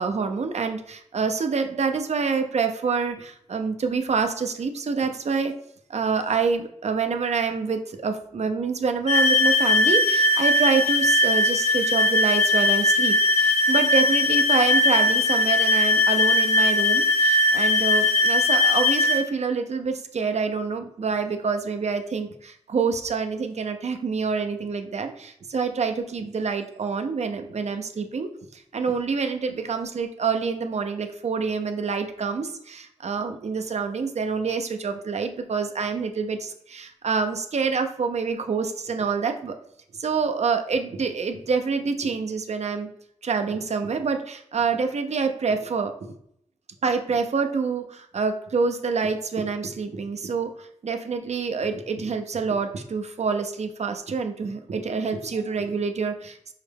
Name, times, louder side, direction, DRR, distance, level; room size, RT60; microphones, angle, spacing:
voice 1, 0.0-5.5 5.9-39.5 40.0-42.9 43.2-46.2 46.8-56.5, right 5 dB, 65° right, 6 dB, 0.5 m, -27 dB
sound 1, 9.1-19.2, left 2 dB, 60° left, 0.6 m, -20 dB
5.5 x 2.1 x 3.3 m, 0.71 s
wide cardioid pair, 75°, 12 cm